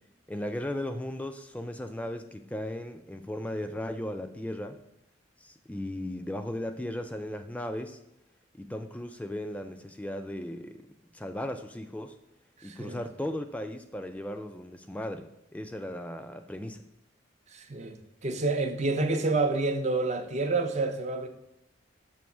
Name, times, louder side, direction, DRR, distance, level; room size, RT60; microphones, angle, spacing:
voice 1, 0.3-4.8 5.4-8.0 8.6-10.9 11.1-12.2 12.6-16.8, left 1 dB, 5° left, 0.3 m, -36 dB
voice 2, 12.6-13.0 17.5-18.0 18.2-21.3, right 3 dB, 35° right, 0.6 m, -28 dB
7.0 x 3.1 x 6.0 m
head